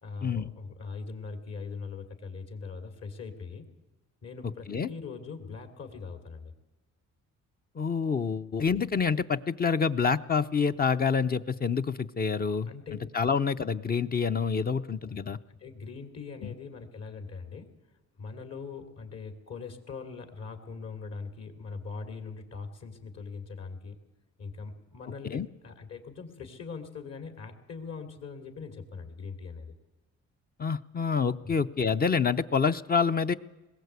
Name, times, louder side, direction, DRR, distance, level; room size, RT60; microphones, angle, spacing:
voice 1, 0.0-3.6 4.2-6.5 12.7-13.0 14.7-17.7 18.2-24.0 24.4-29.7 31.4-31.5, left 4 dB, 55° left, 6 dB, 3.2 m, -41 dB
voice 2, 7.8-12.7 13.1-15.4 16.4-16.5 25.3-25.5 30.6-33.3, left 5 dB, 30° left, 10 dB, 0.7 m, -27 dB
20.5 x 17.0 x 8.2 m, 1.1 s
cardioid pair, 90°, 30 cm